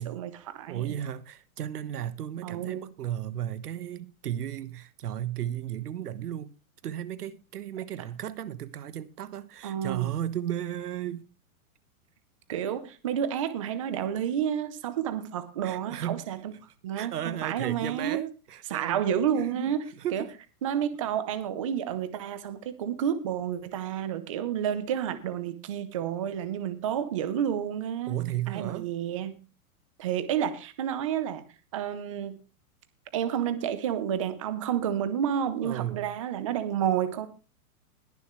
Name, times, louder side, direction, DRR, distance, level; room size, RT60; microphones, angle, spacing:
voice 1, 0.0-1.0 2.4-2.9 9.6-10.1 12.5-16.5 16.8-18.2 18.7-19.8 20.1-20.2 20.6-28.2 28.5-29.4 30.0-31.4 31.7-32.4 33.1-37.3, right 9 dB, 20° right, 0.6 m, -30 dB
voice 2, 0.7-6.5 6.8-11.3 15.6-16.2 16.9-19.0 19.3-20.3 28.1-28.9 35.6-36.1, right 11 dB, 85° right, 1.4 m, -34 dB
21.0 x 7.0 x 3.1 m
hypercardioid pair, 175°, 45 cm